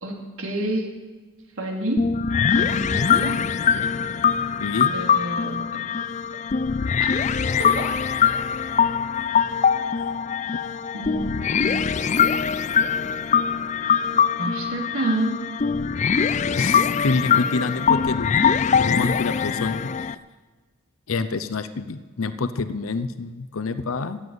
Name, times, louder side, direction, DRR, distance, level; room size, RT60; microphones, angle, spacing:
voice 1, 0.0-0.9 1.6-2.1 2.5-3.4 4.9-5.7 7.0-7.1 7.6-7.9 10.9-12.0 14.4-15.4, right 1 dB, 80° right, 1 dB, 2.8 m, -29 dB
sound 1, 2.0-20.1, left 7 dB, 35° left, 0.3 m, -22 dB
voice 2, 4.6-4.9 16.6-18.5 18.7-20.1 21.1-24.2, left 3 dB, 80° left, 11 dB, 0.7 m, -27 dB
14.5 x 8.2 x 9.5 m, 1.3 s
head